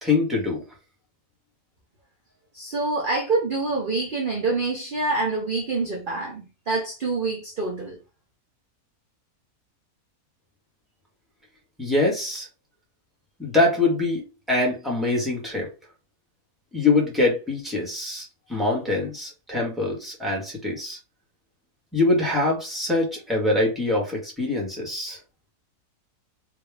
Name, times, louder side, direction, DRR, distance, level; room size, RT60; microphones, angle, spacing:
voice 1, 0.0-0.6 11.8-12.5 13.4-15.7 16.7-21.0 21.9-25.2, left 2 dB, ahead, 1.5 m, -24 dB
voice 2, 2.5-8.0, right 3 dB, 40° right, 0.9 m, -26 dB
3.6 x 2.9 x 3.5 m
omnidirectional pair, 1.6 m